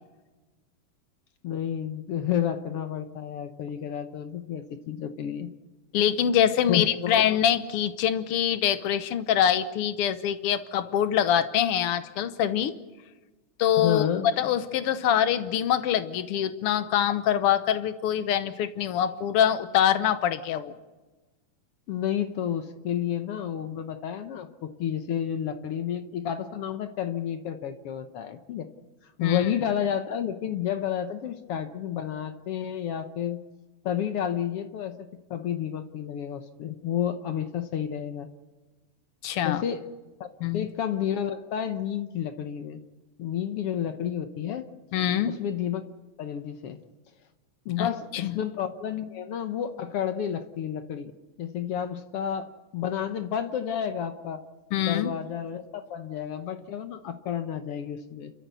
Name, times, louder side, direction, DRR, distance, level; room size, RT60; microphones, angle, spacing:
voice 1, 1.4-5.5 6.7-7.2 13.8-14.3 21.9-28.7 29.2-33.4 33.8-34.9 35.3-38.3 39.4-39.8 40.2-40.3 40.5-42.8 43.2-44.7 45.3-45.8 46.2-46.8 47.6-51.1 51.4-54.4 54.9-58.3, left 9 dB, 70° left, 9 dB, 1.4 m, -30 dB
voice 2, 5.9-12.7 13.6-14.1 14.4-20.7 29.2-29.5 39.2-39.6 40.4-40.7 44.9-45.4 47.8-48.3 54.7-55.1, left 10 dB, 85° left, 11 dB, 1.2 m, -24 dB
30.0 x 13.5 x 8.2 m, 1.2 s
omnidirectional pair, 3.9 m